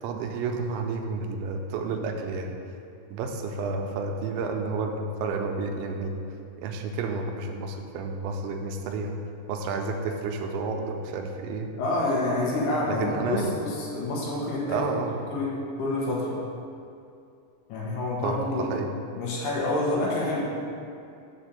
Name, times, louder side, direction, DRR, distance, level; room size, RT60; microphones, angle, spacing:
voice 1, 0.0-2.6 3.1-6.2 6.6-9.1 9.5-11.7 12.8-13.6 14.7-15.2 18.2-18.9, right 4 dB, 85° right, 3 dB, 2.9 m, -31 dB
voice 2, 11.8-14.9 15.3-15.5 15.8-16.4 17.7-18.7 19.1-20.5, left 2 dB, 70° left, -5 dB, 3.0 m, -27 dB
7.2 x 4.2 x 6.7 m, 2.5 s
omnidirectional pair, 5.2 m